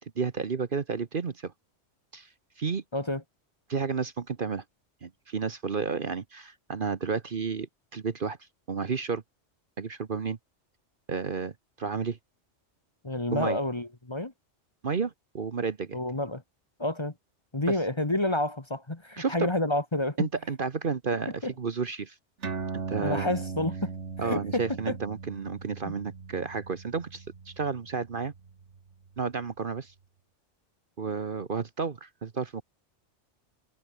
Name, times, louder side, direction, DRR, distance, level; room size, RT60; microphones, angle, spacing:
voice 1, 0.2-1.5 2.1-2.3 2.6-2.8 3.7-4.6 5.0-8.4 8.7-9.2 9.8-10.4 11.1-12.2 13.3-13.6 14.8-16.0 19.2-19.5 20.2-22.1 22.7-23.3 24.2-28.3 29.2-29.9 31.0-32.6, right 5 dB, 50° right, 1.2 m, -31 dB
voice 2, 13.0-14.3 15.9-16.4 16.8-17.1 17.5-20.3 21.4-21.5 22.9-23.9 24.2-25.0 25.8-25.9, left 1 dB, 25° left, 1.6 m, -29 dB
sound 1, 22.4-29.4, right 5 dB, 75° right, 2.1 m, -39 dB
omnidirectional pair, 1.2 m